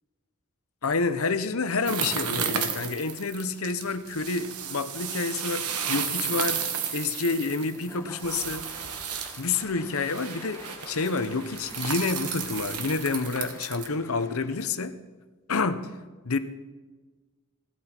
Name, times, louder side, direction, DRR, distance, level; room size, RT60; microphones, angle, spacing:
voice 1, 0.8-8.9 9.4-15.0 15.5-16.0 16.2-16.4, left 4 dB, 65° left, 11 dB, 0.8 m, -29 dB
sound 1, 1.9-13.9, right 7 dB, 90° right, 1.3 m, -33 dB
Applause / Crowd, 7.5-14.9, left 2 dB, 15° left, 1.1 m, -48 dB
16.5 x 12.0 x 4.4 m, 1.3 s
head